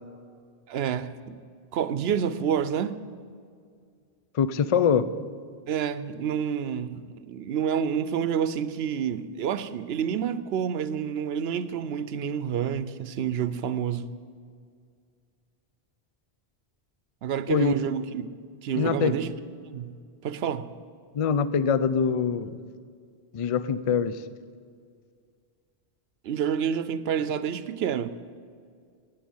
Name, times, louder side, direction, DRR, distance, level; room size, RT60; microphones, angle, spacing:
voice 1, 0.7-1.4 1.7-3.0 5.7-14.1 17.2-18.3 18.6-19.3 19.6-20.0 20.2-20.7 26.2-28.1, right 8 dB, 80° right, 0.9 m, -28 dB
voice 2, 4.3-5.1 17.5-17.8 18.8-19.1 21.1-22.6 23.3-24.2, left 6 dB, 45° left, 0.4 m, -24 dB
13.5 x 9.1 x 7.1 m
omnidirectional pair, 1.0 m